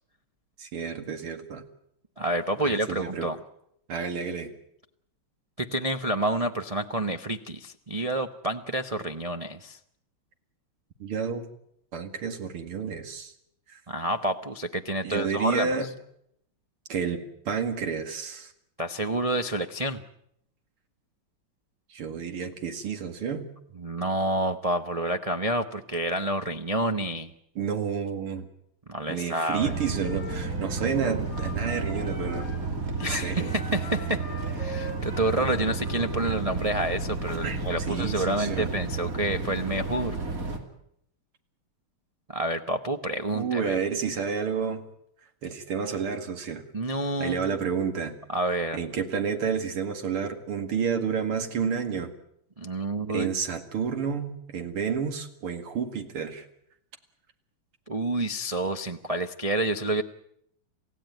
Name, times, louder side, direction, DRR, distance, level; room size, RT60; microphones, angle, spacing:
voice 1, 0.6-1.6 2.6-3.3 3.9-4.5 11.0-11.5 11.9-13.3 13.7-13.8 15.0-15.9 16.9-18.5 21.9-23.5 27.6-28.5 29.1-32.5 33.1-33.5 37.4-38.7 43.3-44.8 45.4-46.6 47.2-48.1 48.7-52.1 53.1-56.4, right 6 dB, 90° right, 7 dB, 3.0 m, -30 dB
voice 2, 2.2-3.4 5.6-9.8 13.9-15.7 18.8-20.0 23.8-27.3 28.9-29.7 33.0-34.2 34.5-40.2 42.3-43.8 46.7-47.6 48.3-48.8 52.6-53.3 57.9-60.0, right 1 dB, 60° right, 6 dB, 0.3 m, -28 dB
Wind instrument woodwind instrument, 29.6-32.7 33.0-36.3, equal, 55° left, 5.5 m, -41 dB
sound 1, 29.6-40.6, right 3 dB, 40° right, 3.1 m, -32 dB
28.0 x 16.0 x 9.2 m, 0.75 s
omnidirectional pair, 2.4 m